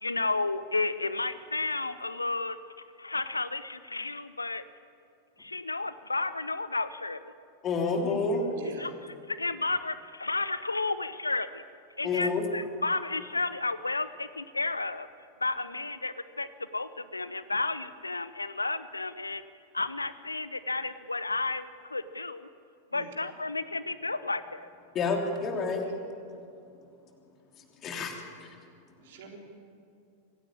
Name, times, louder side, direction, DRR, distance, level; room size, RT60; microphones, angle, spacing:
voice 1, 0.0-2.6 3.0-4.6 5.4-7.2 8.6-11.6 12.0-15.1 15.4-19.4 19.7-22.5 22.9-24.7, left 3 dB, 80° left, 15 dB, 0.7 m, -32 dB
voice 2, 7.6-8.4 12.0-12.4 24.9-25.9 27.8-28.5, left 4 dB, 30° left, 2 dB, 3.3 m, -29 dB
voice 3, 8.5-9.0 22.9-23.1 29.0-29.4, right 5 dB, 55° right, 1 dB, 3.8 m, -46 dB
25.0 x 16.0 x 8.7 m, 2.5 s
figure-of-eight pair, 90°, 0 cm